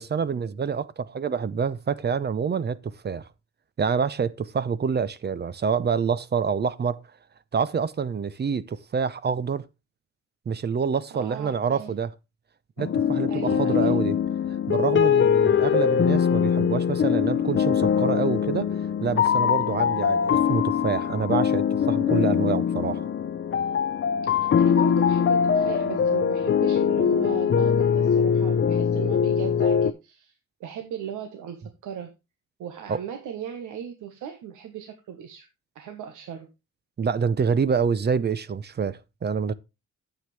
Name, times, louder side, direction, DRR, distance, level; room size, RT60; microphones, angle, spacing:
voice 1, 0.0-3.3 3.8-7.0 7.5-9.6 10.5-12.1 12.8-14.2 14.7-18.7 19.0-23.1 32.9-33.0 37.0-39.5, right 6 dB, 35° right, 0.7 m, -27 dB
voice 2, 11.1-11.9 13.3-14.0 15.5-15.7 24.2-32.1 32.6-35.5 35.7-36.5, right 8 dB, 80° right, 1.4 m, -37 dB
sound 1, 12.8-29.9, left 7 dB, 40° left, 0.7 m, -22 dB
9.2 x 7.9 x 3.3 m
cardioid pair, 90°, 30 cm